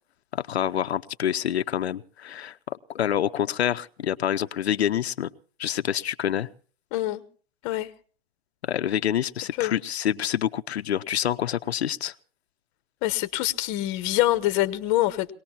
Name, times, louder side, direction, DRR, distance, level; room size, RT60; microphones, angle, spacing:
voice 1, 0.3-2.6 2.9-5.3 5.6-6.5 8.6-12.1, left 10 dB, 90° left, 0.7 m, -27 dB
voice 2, 6.9-7.2 7.6-7.9 9.6-9.7 13.0-15.3, left 15 dB, 35° left, 1.0 m, -25 dB
23.5 x 19.0 x 2.9 m
hypercardioid pair, 140°, 31 cm